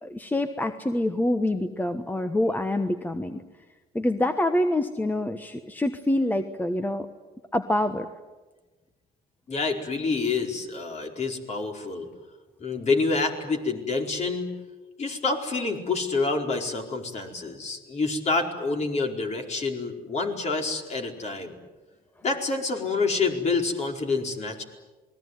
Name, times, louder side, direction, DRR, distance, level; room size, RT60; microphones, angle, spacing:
voice 1, 0.0-3.4 3.9-7.1 7.5-8.1, left 1 dB, 10° left, 8 dB, 1.2 m, -26 dB
voice 2, 9.5-12.1 12.6-14.5 15.0-21.5 22.2-24.6, left 3 dB, 40° left, 3 dB, 4.7 m, -27 dB
28.0 x 20.5 x 9.4 m, 1.2 s
cardioid pair, 110°, 17 cm